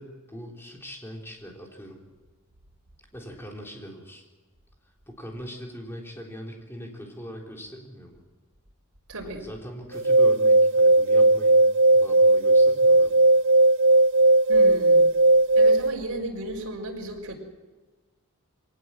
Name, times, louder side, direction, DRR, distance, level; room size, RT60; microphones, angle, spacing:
voice 1, 0.0-2.1 3.1-4.2 5.1-8.2 9.2-13.3, equal, 10° left, 0 dB, 3.7 m, -41 dB
voice 2, 9.1-9.5 14.5-15.1 15.5-17.4, right 1 dB, 80° right, -1 dB, 4.7 m, -34 dB
sound 1, 9.9-15.9, right 2 dB, 55° right, 0.7 m, -17 dB
23.5 x 18.5 x 7.7 m, 1.3 s
head